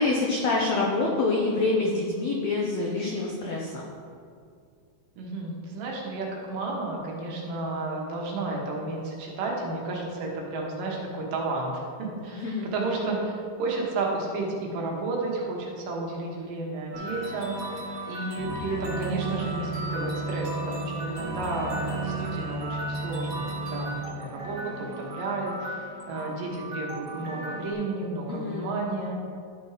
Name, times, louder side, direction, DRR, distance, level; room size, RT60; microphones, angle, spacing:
voice 1, 0.0-3.8 12.4-12.7 28.3-28.7, left 3 dB, 85° left, -2 dB, 1.5 m, -26 dB
voice 2, 5.2-11.7 12.0-13.3 13.6-17.7 18.1-29.1, right 2 dB, 70° right, -2 dB, 2.7 m, -32 dB
sound 1, 16.9-27.7, right 2 dB, 40° right, 1.2 m, -34 dB
12.5 x 4.4 x 4.9 m, 2.3 s
omnidirectional pair, 4.3 m